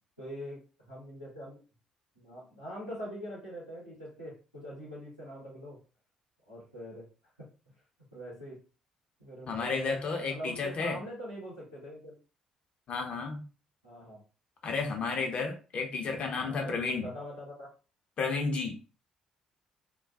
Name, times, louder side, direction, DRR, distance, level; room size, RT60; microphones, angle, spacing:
voice 1, 0.2-1.6 2.1-5.8 6.5-7.1 7.4-7.5 8.1-8.6 9.2-12.1 13.8-14.2 16.3-17.7, equal, 90° left, -9 dB, 1.0 m, -43 dB
voice 2, 9.5-11.0 12.9-13.4 14.6-17.1 18.2-18.8, left 4 dB, 45° left, 3 dB, 0.6 m, -32 dB
2.3 x 2.2 x 2.4 m, 0.35 s
figure-of-eight pair, 45°, 3 cm